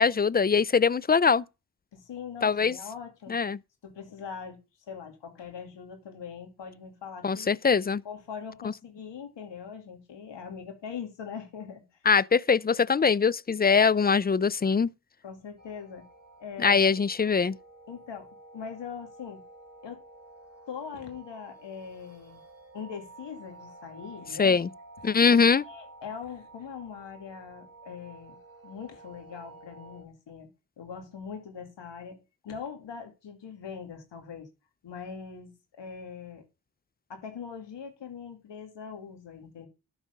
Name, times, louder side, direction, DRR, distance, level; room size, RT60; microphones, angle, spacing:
voice 1, 0.0-1.4 2.4-2.8 3.3-3.6 7.2-8.0 12.1-14.9 16.6-17.6 24.4-24.7 25.0-25.6, left 5 dB, 25° left, 0.4 m, -22 dB
voice 2, 1.9-3.4 3.8-4.6 4.9-7.6 8.0-11.8 15.2-16.0 16.4-16.9 17.9-19.4 19.8-20.0 20.7-22.4 22.7-24.6 25.3-28.4 28.6-30.5 30.8-34.5 34.8-36.4 37.1-39.7, left 6 dB, 80° left, 2.5 m, -41 dB
sound 1, 15.6-30.0, right 2 dB, 35° right, 3.4 m, -51 dB
13.0 x 4.8 x 5.3 m
supercardioid pair, 40°, 43 cm